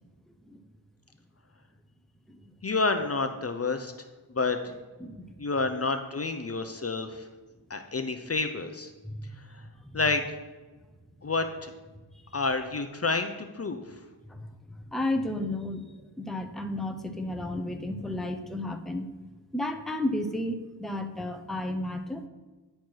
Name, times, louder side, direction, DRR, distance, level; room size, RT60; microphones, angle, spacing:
voice 1, 2.6-3.9 4.3-4.6 5.4-7.3 7.7-8.9 9.5-9.6 9.9-10.2 11.2-11.7 12.3-13.8, left 3 dB, 35° left, 7 dB, 0.7 m, -29 dB
voice 2, 14.9-15.8 16.2-19.1 19.5-22.2, left 1 dB, ahead, 6 dB, 0.8 m, -32 dB
10.5 x 4.5 x 4.7 m, 1.2 s
cardioid pair, 50°, 42 cm